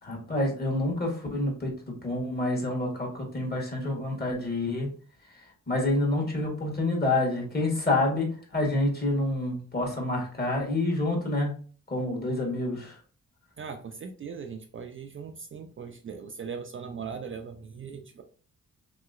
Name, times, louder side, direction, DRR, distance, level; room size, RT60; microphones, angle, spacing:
voice 1, 0.0-1.7 2.0-4.9 5.3-11.5 11.9-13.0, left 2 dB, 30° left, -1 dB, 1.3 m, -28 dB
voice 2, 13.6-18.2, right 6 dB, 40° right, 4 dB, 0.4 m, -39 dB
3.0 x 2.9 x 2.4 m, 0.41 s
cardioid pair, 100°, 31 cm